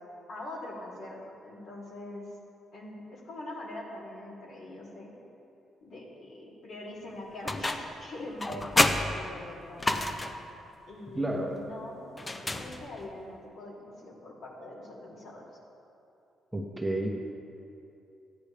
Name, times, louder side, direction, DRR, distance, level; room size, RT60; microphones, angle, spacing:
voice 1, 0.3-2.3 2.7-5.1 5.8-9.9 10.9-15.4, left 1 dB, 65° left, -5 dB, 2.9 m, -43 dB
sound 1, 7.5-8.0 8.4-10.5 12.2-13.1, left 1 dB, 20° left, 0.7 m, -29 dB
voice 2, 11.1-11.6 16.5-17.1, right 1 dB, 10° right, 0 dB, 1.1 m, -30 dB
13.0 x 10.0 x 3.4 m, 2.7 s
cardioid pair, 75°, 0 cm